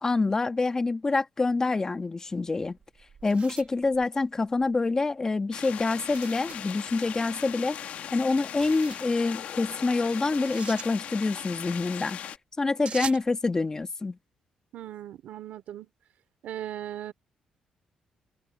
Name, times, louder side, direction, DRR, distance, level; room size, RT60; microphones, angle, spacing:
voice 1, 0.0-2.8 3.2-7.8 8.1-12.2 12.6-14.2, left 3 dB, 25° left, 1.4 m, -26 dB
sound 1, 2.7-4.7 6.1-6.7 8.4-9.1 10.3-10.9 12.8-13.3, right 7 dB, 55° right, 1.8 m, -42 dB
sound 2, 5.5-12.4, left 10 dB, 75° left, 1.4 m, -39 dB
voice 2, 14.7-15.9 16.4-17.1, right 12 dB, 80° right, 2.9 m, -38 dB
open air
cardioid pair, 95°, 2 cm